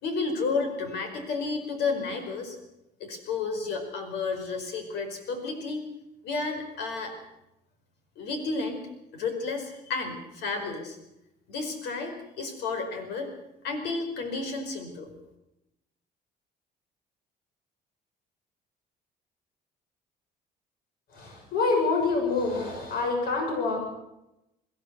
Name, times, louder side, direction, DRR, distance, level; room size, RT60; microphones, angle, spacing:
voice 1, 0.0-2.6 3.0-5.9 6.2-7.1 8.2-8.8 9.1-11.0 11.5-13.3 13.6-15.1, left 4 dB, 80° left, 6 dB, 4.9 m, -31 dB
voice 2, 21.1-23.9, left 3 dB, 65° left, 2 dB, 6.8 m, -26 dB
22.0 x 15.0 x 8.1 m, 0.89 s
cardioid pair, 110°, 17 cm